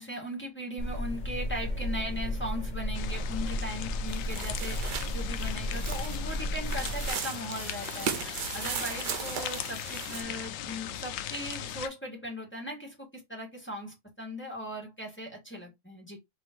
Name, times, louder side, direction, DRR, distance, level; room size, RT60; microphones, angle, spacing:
voice 1, 0.0-16.2, equal, 5° left, 1.7 m, -39 dB
sound 1, 0.8-7.1, equal, 60° left, 0.4 m, -33 dB
sound 2, 2.9-11.9, left 10 dB, 80° left, 1.3 m, -39 dB
sound 3, 4.1-10.2, right 8 dB, 70° right, 1.3 m, -37 dB
4.3 x 3.4 x 3.0 m
omnidirectional pair, 2.1 m